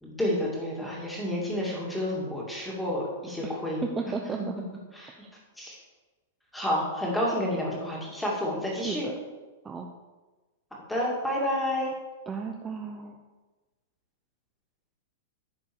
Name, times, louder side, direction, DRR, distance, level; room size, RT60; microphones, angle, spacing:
voice 1, 0.0-3.8 4.3-4.5 4.9-5.2 5.6-5.8 6.5-9.1 10.9-11.9, left 1 dB, 5° left, -4 dB, 2.3 m, -30 dB
voice 2, 3.8-4.5 5.2-5.3 8.7-9.0 9.6-9.9 12.3-13.2, right 5 dB, 15° right, 1 dB, 0.6 m, -34 dB
10.5 x 4.5 x 7.1 m, 1.2 s
supercardioid pair, 155°, 0 cm